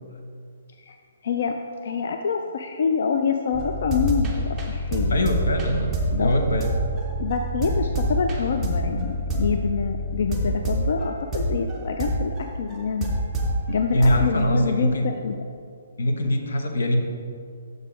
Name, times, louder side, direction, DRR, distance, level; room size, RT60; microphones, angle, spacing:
voice 1, 1.2-1.6 1.8-5.3 6.1-6.4 7.2-13.2 13.7-15.4, left 6 dB, 50° left, 5 dB, 0.3 m, -26 dB
sound 1, 3.5-13.6 14.0-14.5, right 1 dB, 5° right, 0.6 m, -26 dB
voice 2, 5.1-5.9 6.2-6.7 13.9-15.1 16.0-17.0, left 1 dB, 80° left, 3 dB, 1.0 m, -22 dB
6.6 x 4.7 x 5.0 m, 2.3 s
hypercardioid pair, 180°, 0 cm